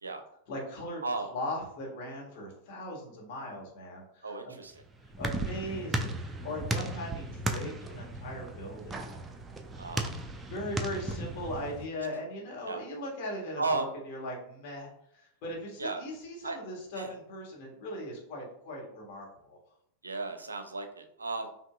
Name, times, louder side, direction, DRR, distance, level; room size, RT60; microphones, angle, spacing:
voice 1, 0.5-1.0 1.3-4.6 5.2-9.2 10.5-19.6, left 1 dB, 45° left, -2 dB, 1.4 m, -39 dB
voice 2, 4.2-4.7 9.8-10.1 12.6-12.8 13.6-13.9 15.8-16.0 16.4-16.6 17.0-17.1 20.0-21.5, right 3 dB, 75° right, 7 dB, 0.5 m, -34 dB
sound 1, 4.6-11.9, right 1 dB, 15° right, 0.4 m, -36 dB
5.3 x 2.7 x 2.3 m, 0.73 s
figure-of-eight pair, 90°, 0 cm